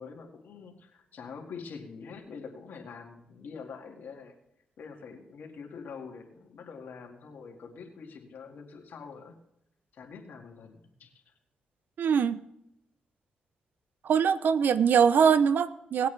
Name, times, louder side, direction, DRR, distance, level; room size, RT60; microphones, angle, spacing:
voice 1, 0.0-4.3 4.8-9.4 9.9-11.1, left 5 dB, 75° left, 2 dB, 2.1 m, -45 dB
voice 2, 12.0-12.4 14.0-16.1, right 7 dB, 70° right, 15 dB, 0.6 m, -23 dB
19.0 x 8.2 x 3.4 m, 0.77 s
cardioid pair, 65°, 3 cm